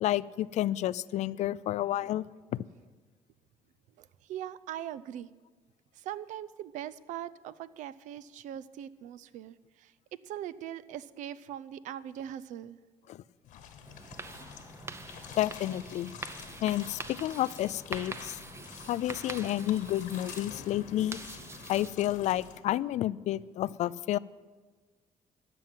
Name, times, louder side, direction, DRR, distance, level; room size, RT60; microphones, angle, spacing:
voice 1, 0.0-2.3 2.5-2.6 13.1-13.2 15.4-16.1 16.6-18.4 18.9-21.2 21.7-24.2, left 13 dB, 65° left, 20 dB, 0.4 m, -30 dB
voice 2, 4.0-5.3 5.9-9.9 10.2-12.8, right 11 dB, 75° right, 15 dB, 0.5 m, -41 dB
sound 1, 13.4-22.6, left 8 dB, 80° left, 1.3 m, -48 dB
sound 2, 13.8-21.9, right 3 dB, 20° right, 0.7 m, -44 dB
13.0 x 6.0 x 9.1 m, 1.4 s
cardioid pair, 95°, 13 cm